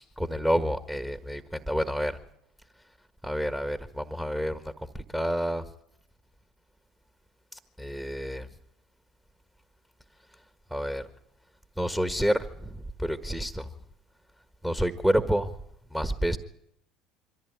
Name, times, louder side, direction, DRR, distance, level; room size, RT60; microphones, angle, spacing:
voice 1, 0.0-2.2 3.2-5.6 7.5-8.5 10.7-11.1 11.8-13.7 14.6-15.5 15.9-16.4, equal, 5° right, 10 dB, 1.5 m, -29 dB
24.0 x 14.5 x 9.6 m, 0.77 s
figure-of-eight pair, 65°, 0 cm